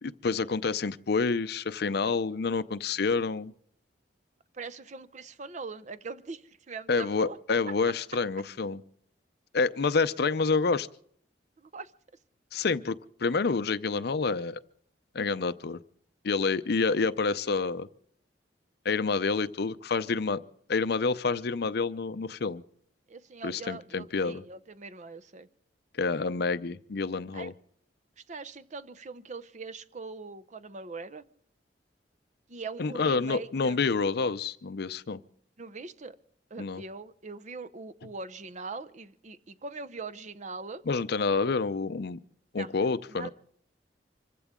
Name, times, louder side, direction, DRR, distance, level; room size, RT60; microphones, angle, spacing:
voice 1, 0.0-3.5 6.9-8.8 9.5-10.9 12.5-14.6 15.1-15.8 16.2-17.9 18.8-20.4 20.7-22.6 23.4-24.4 26.0-27.5 32.8-35.2 36.6-36.8 40.9-42.2 42.5-43.3, left 4 dB, 60° left, 0.6 m, -28 dB
voice 2, 4.5-7.4 7.7-7.8 11.6-11.9 23.1-25.5 27.3-27.5 28.2-31.2 32.5-33.8 35.6-36.2 36.5-40.8 42.6-42.7 43.1-43.3, right 4 dB, 40° right, 0.7 m, -42 dB
25.5 x 15.0 x 3.7 m
head